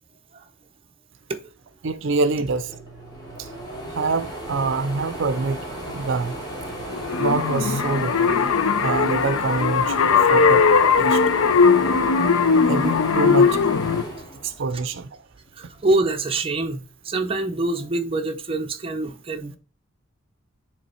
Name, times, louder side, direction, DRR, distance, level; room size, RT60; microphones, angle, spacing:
voice 1, 1.8-2.8 3.4-3.5 3.9-6.3 7.2-8.3 8.8-10.6 11.0-11.2 12.7-13.6 14.4-15.1, right 3 dB, 65° right, 0.5 m, -25 dB
sound 1, 2.4-15.0 15.5-16.6, right 1 dB, 20° left, 2.3 m, -35 dB
sound 2, 6.9-14.0, left 5 dB, 90° left, 0.5 m, -19 dB
voice 2, 15.6-19.6, right 2 dB, 25° right, 0.7 m, -25 dB
8.3 x 3.4 x 4.2 m
head